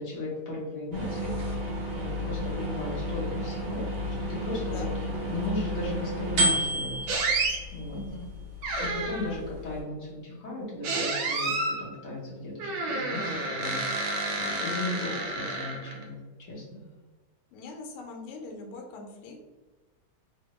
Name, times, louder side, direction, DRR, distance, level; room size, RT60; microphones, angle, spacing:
voice 1, 0.0-1.3 1.9-3.9 4.3-6.9 7.7-8.0 8.8-14.0 14.4-16.2 16.5-16.8, left 2 dB, 55° left, -6 dB, 1.0 m, -36 dB
sound 1, 0.9-9.8, equal, 60° right, 1.1 m, -32 dB
sound 2, 7.1-7.6 8.6-9.4 10.8-11.8 12.6-16.0, right 2 dB, 80° right, 1.4 m, -30 dB
voice 2, 7.9-8.3 17.5-19.4, left 2 dB, 85° left, 1 dB, 1.5 m, -42 dB
3.6 x 2.0 x 2.9 m, 1.3 s
omnidirectional pair, 2.3 m